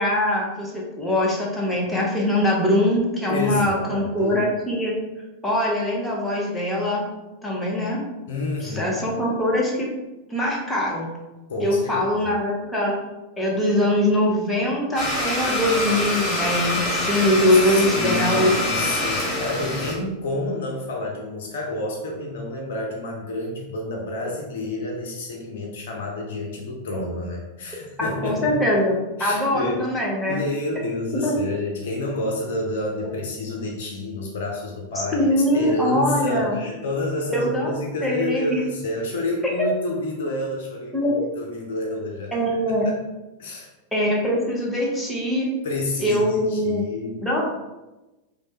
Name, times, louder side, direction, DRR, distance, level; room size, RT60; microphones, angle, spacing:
voice 1, 0.0-4.9 5.4-7.0 7.4-8.0 8.6-9.9 10.3-11.1 11.6-13.0 13.4-18.5 28.0-30.4 31.2-31.3 35.1-36.6 37.3-37.7 38.0-38.6 40.9-41.3 42.3-42.9 43.9-45.5 46.0-46.8 47.2-47.4, left 1 dB, 10° left, -4 dB, 0.8 m, -22 dB
voice 2, 3.3-4.4 8.3-9.1 11.5-12.1 17.5-28.6 29.2-29.9 30.3-42.4 42.8-43.0 43.4-43.7 45.6-47.2, left 2 dB, 60° left, 0 dB, 0.5 m, -29 dB
Domestic sounds home sounds, 15.0-19.9, left 1 dB, 30° left, 1.1 m, -25 dB
3.1 x 2.1 x 2.9 m, 1.1 s
figure-of-eight pair, 90°, 0 cm